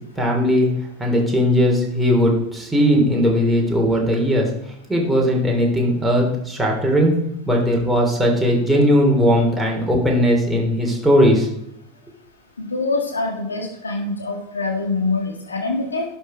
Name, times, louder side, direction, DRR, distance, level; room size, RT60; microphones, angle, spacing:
voice 1, 0.2-0.7 1.0-4.5 4.9-7.1 7.5-11.5, equal, 5° right, -2 dB, 3.3 m, -18 dB
voice 2, 12.6-16.0, left 3 dB, 80° left, 1 dB, 1.8 m, -24 dB
11.0 x 6.2 x 5.1 m, 0.78 s
figure-of-eight pair, 85°, 0 cm